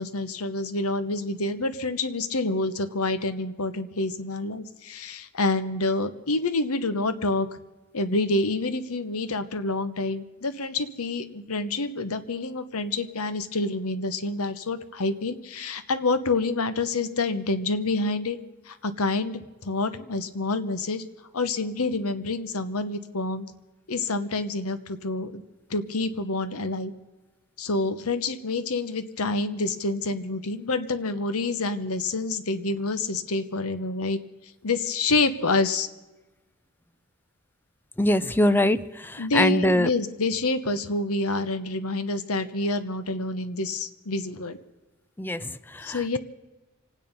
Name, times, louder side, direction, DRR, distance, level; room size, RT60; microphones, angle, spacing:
voice 1, 0.0-7.6 7.9-18.4 18.7-21.0 21.3-23.5 23.9-25.4 25.7-26.9 27.6-34.2 34.6-35.9 39.2-44.6 45.8-46.2, left 3 dB, 75° left, 11 dB, 1.0 m, -27 dB
voice 2, 38.0-39.9 45.2-46.2, left 1 dB, 10° left, 12 dB, 0.5 m, -23 dB
26.0 x 9.3 x 5.4 m, 1.1 s
head